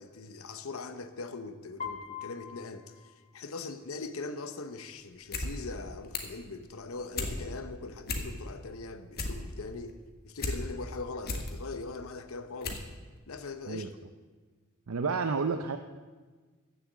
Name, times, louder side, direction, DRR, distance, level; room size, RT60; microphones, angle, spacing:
voice 1, 0.0-12.8 13.3-13.9, left 3 dB, 80° left, 10 dB, 0.9 m, -41 dB
Piano, 1.8-3.8, left 6 dB, 30° left, 1.1 m, -43 dB
sound 1, 5.1-5.5 5.8-6.4 6.8-7.3 7.7-7.8 8.0-8.6 8.9-10.6 11.0-11.5 12.1-12.2 12.6-12.9 13.2-13.3, left 3 dB, 45° left, 1.5 m, -35 dB
voice 2, 14.9-15.8, right 4 dB, 85° right, 7 dB, 0.6 m, -30 dB
14.0 x 7.0 x 7.4 m, 1.4 s
head